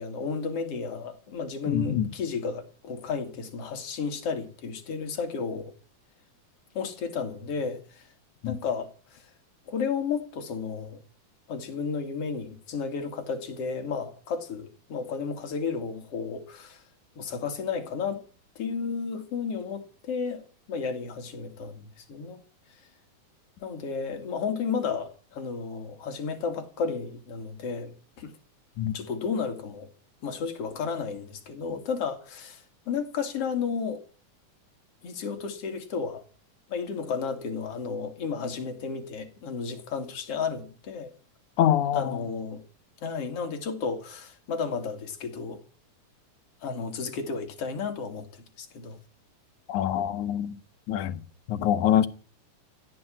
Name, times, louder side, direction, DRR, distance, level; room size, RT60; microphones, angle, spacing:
voice 1, 0.0-5.7 6.8-8.1 8.5-9.2 9.7-11.0 11.5-16.8 17.2-18.2 18.6-22.4 23.6-27.9 28.2-28.3 28.9-29.9 30.2-34.0 35.0-36.2 36.7-41.1 41.9-42.6 43.0-45.6 46.6-49.0, left 5 dB, 50° left, 3.3 m, -33 dB
voice 2, 1.7-2.1 8.4-8.6 28.8-28.9 41.6-42.2 49.7-50.6 50.9-51.2 51.5-52.1, left 10 dB, 75° left, 2.4 m, -25 dB
16.0 x 9.0 x 10.0 m
omnidirectional pair, 3.6 m